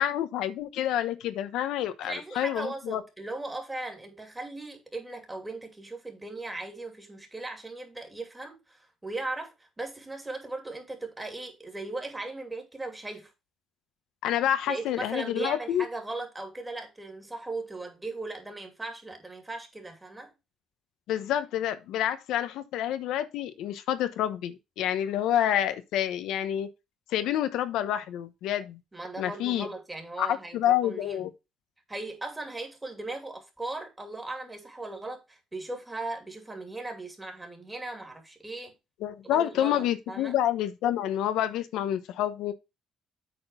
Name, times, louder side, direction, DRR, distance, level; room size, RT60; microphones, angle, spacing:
voice 1, 0.0-3.0 14.2-15.8 21.1-26.7 27.1-28.8 29.2-29.7 30.2-31.3 39.0-42.5, left 11 dB, 85° left, 0.9 m, -28 dB
voice 2, 2.0-13.3 14.7-20.3 28.9-31.2 31.9-38.7 39.2-40.4, right 2 dB, 15° right, 2.6 m, -38 dB
8.5 x 4.3 x 5.4 m
cardioid pair, 115°, 0 cm